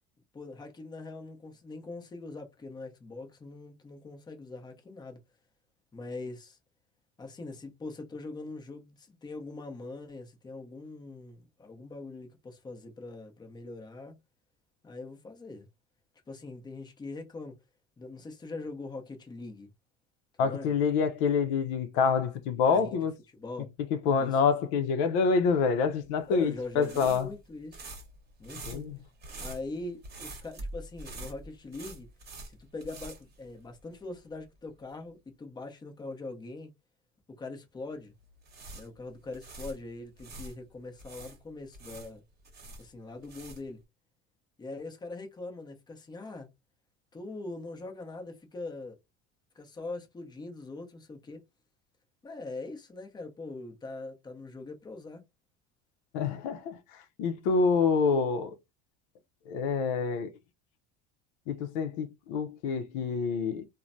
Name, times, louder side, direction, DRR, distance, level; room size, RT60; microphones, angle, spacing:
voice 1, 0.3-5.2 5.9-6.6 7.2-14.1 14.8-15.7 16.3-17.5 18.0-19.7 20.4-20.8 22.7-23.0 23.3-23.7 24.2-24.4 26.3-27.8 28.4-28.9 29.4-32.1 32.5-36.7 37.4-38.1 38.7-42.2 42.8-43.8 44.6-46.5 47.1-49.0 49.6-51.4 52.2-55.2, left 3 dB, 15° left, 0.6 m, -42 dB
voice 2, 20.4-23.1 24.1-27.3 28.7-29.0 56.1-56.8 57.2-58.6 59.5-60.3 61.5-63.7, left 5 dB, 80° left, 0.6 m, -27 dB
sound 1, 25.9-34.0 34.3-34.5 38.2-40.5 41.0-43.8, right 2 dB, 30° right, 1.0 m, -45 dB
3.1 x 2.1 x 2.5 m
supercardioid pair, 115°, 33 cm